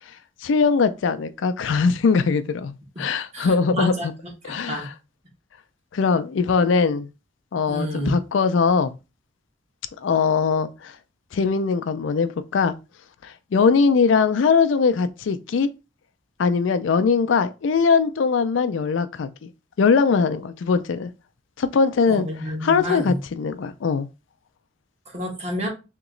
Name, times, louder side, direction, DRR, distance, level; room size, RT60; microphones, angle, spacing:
voice 1, 0.4-2.7 3.0-4.1 4.4-4.9 5.9-7.1 7.5-8.9 10.0-11.0 11.3-12.7 13.2-15.7 16.4-19.5 19.8-21.1 21.6-22.3 22.6-24.1, left 5 dB, 80° left, 0.4 m, -21 dB
voice 2, 3.3-4.1 4.5-4.9 7.7-8.1 22.1-23.2 25.1-25.7, equal, 35° right, 1.3 m, -29 dB
3.0 x 2.9 x 3.7 m
head